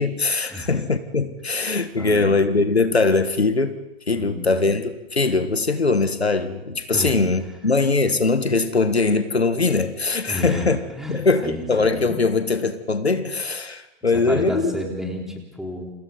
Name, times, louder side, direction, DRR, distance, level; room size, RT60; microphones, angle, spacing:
voice 1, 0.0-3.8 4.1-10.8 11.1-14.7, left 3 dB, 85° left, 10 dB, 1.6 m, -21 dB
voice 2, 1.9-2.4 4.1-4.6 6.9-7.2 10.3-12.2 14.1-15.9, left 1 dB, ahead, 0 dB, 4.0 m, -31 dB
29.0 x 26.0 x 4.1 m, 1.0 s
figure-of-eight pair, 110°, 31 cm